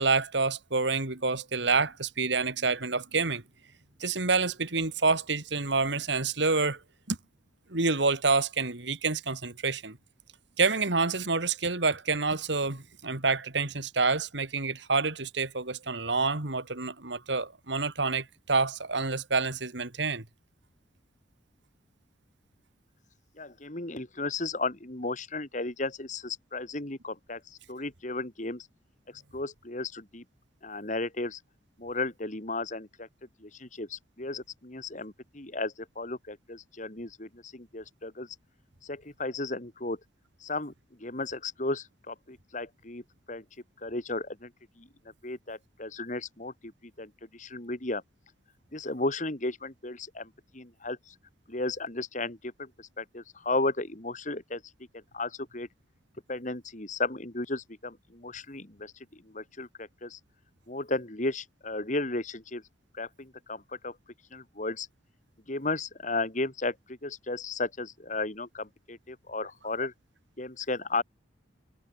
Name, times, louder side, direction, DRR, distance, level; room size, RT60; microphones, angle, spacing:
voice 1, 0.0-3.4 4.0-6.8 7.1-7.2 7.7-10.0 10.6-20.2, right 4 dB, 70° right, 2.4 m, -28 dB
voice 2, 23.4-28.7 29.1-30.2 30.6-31.4 31.8-33.1 33.4-38.3 38.8-40.0 40.4-40.7 41.0-43.0 43.3-43.4 43.8-44.5 44.8-44.9 45.2-48.0 48.7-51.1 51.5-54.6 54.9-55.7 56.3-60.2 60.7-62.6 62.9-64.0 64.3-64.9 65.5-69.9 70.4-71.0, left 2 dB, 40° left, 2.5 m, -34 dB
head